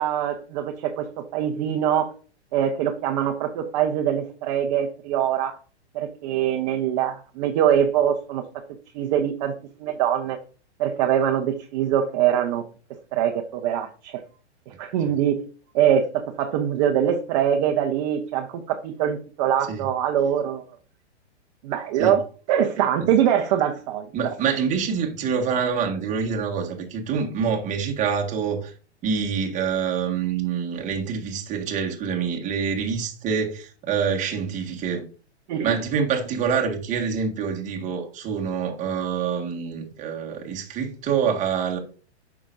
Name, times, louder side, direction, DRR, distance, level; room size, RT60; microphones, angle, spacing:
voice 1, 0.0-2.1 2.5-5.6 5.9-8.4 8.9-9.5 9.8-10.4 10.8-12.6 13.1-14.2 14.7-15.4 15.7-20.6 21.6-24.3 35.5-35.7, right 9 dB, 35° right, 0.9 m, -23 dB
voice 2, 24.1-28.7 29.0-35.1 35.6-41.8, right 6 dB, 20° right, 1.7 m, -26 dB
9.3 x 6.0 x 2.6 m
hypercardioid pair, 140°, 34 cm